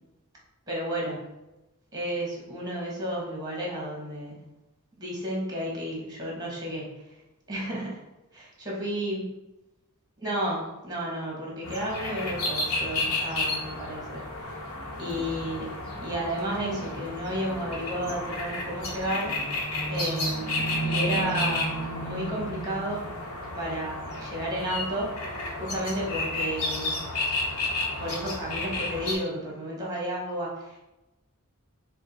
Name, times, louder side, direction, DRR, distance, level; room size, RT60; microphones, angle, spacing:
voice 1, 0.7-1.3 1.9-4.5 5.0-7.0 7.5-8.0 8.3-9.3 10.2-14.5 15.0-19.3 19.9-23.1 23.5-25.1 25.6-27.0 28.0-30.8, equal, 20° right, -3 dB, 1.3 m, -32 dB
sound 1, 11.6-29.1, left 1 dB, 70° left, 1.0 m, -31 dB
4.8 x 2.2 x 4.3 m, 1.0 s
head